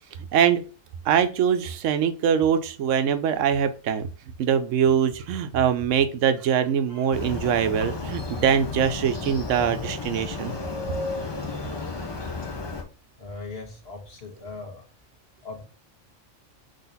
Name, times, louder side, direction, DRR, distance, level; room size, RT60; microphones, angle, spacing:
voice 1, 0.3-0.6 1.0-4.1 4.4-10.5, right 8 dB, 80° right, 11 dB, 0.9 m, -23 dB
Motorcycle, 7.1-12.8, left 3 dB, 30° left, 0.6 m, -33 dB
voice 2, 13.2-14.8 15.4-15.6, left 3 dB, 55° left, 1 dB, 1.5 m, -39 dB
3.9 x 3.2 x 4.0 m, 0.36 s
omnidirectional pair, 1.3 m